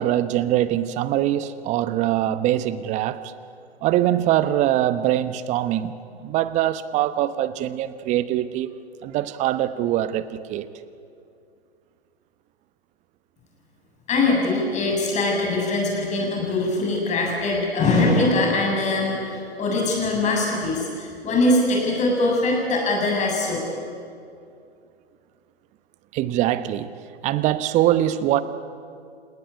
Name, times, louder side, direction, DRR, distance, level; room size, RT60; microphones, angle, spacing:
voice 1, 0.0-3.3 3.8-8.7 9.0-10.7 26.1-26.9 27.2-28.4, right 13 dB, 20° right, 14 dB, 0.9 m, -23 dB
voice 2, 14.1-23.6, left 2 dB, 20° left, 0 dB, 7.6 m, -22 dB
28.5 x 19.0 x 9.9 m, 2.4 s
figure-of-eight pair, 125°, 33 cm